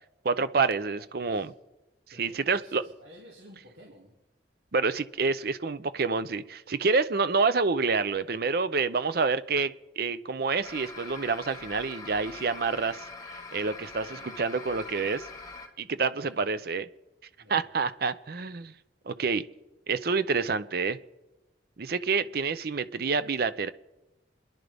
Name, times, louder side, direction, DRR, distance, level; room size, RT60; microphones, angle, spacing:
voice 1, 0.2-1.5 2.2-2.8 4.7-15.3 15.8-16.9 17.5-18.7 19.1-19.4 19.9-21.0 21.8-23.7, right 4 dB, 55° right, 14 dB, 0.6 m, -28 dB
voice 2, 0.9-1.5 2.1-4.1 14.1-14.3 16.2-16.5 17.4-17.7, equal, 85° right, -3 dB, 2.5 m, -53 dB
sound 1, 10.6-15.7, left 4 dB, 20° left, 1.4 m, -43 dB
28.5 x 10.5 x 3.5 m, 1.0 s
head